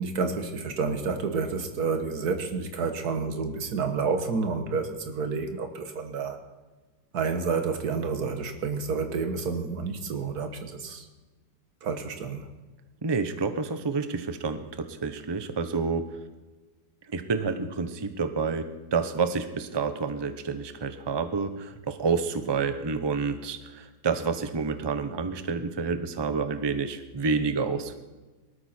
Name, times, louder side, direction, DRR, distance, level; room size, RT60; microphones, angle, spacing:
voice 1, 0.0-6.4 7.1-11.1 11.8-12.5, right 4 dB, 60° right, 6 dB, 1.9 m, -29 dB
voice 2, 13.0-16.1 17.1-28.0, right 4 dB, 25° right, 9 dB, 0.6 m, -29 dB
19.0 x 13.0 x 4.4 m, 1.2 s
omnidirectional pair, 1.9 m